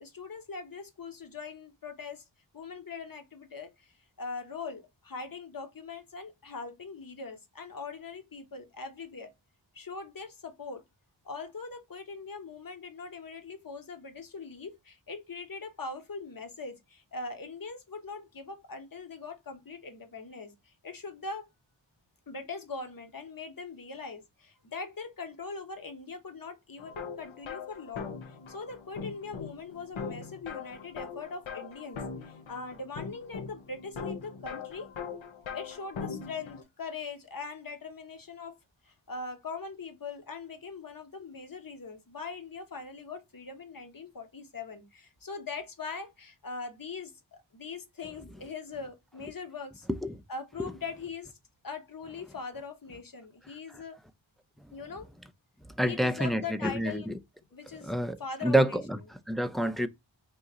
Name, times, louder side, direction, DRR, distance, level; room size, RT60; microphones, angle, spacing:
voice 1, 0.0-2.2 2.5-9.3 9.7-10.8 11.2-21.5 22.3-34.9 35.5-38.6 38.8-49.9 50.3-51.3 51.6-54.0 54.7-55.1 55.8-57.1 57.5-58.8, left 4 dB, 45° left, 1.0 m, -41 dB
sound 1, 26.8-36.6, left 5 dB, 80° left, 0.7 m, -41 dB
voice 2, 55.8-57.1 57.8-59.9, right 1 dB, ahead, 0.4 m, -28 dB
3.0 x 2.8 x 3.6 m
wide cardioid pair, 45°, 47 cm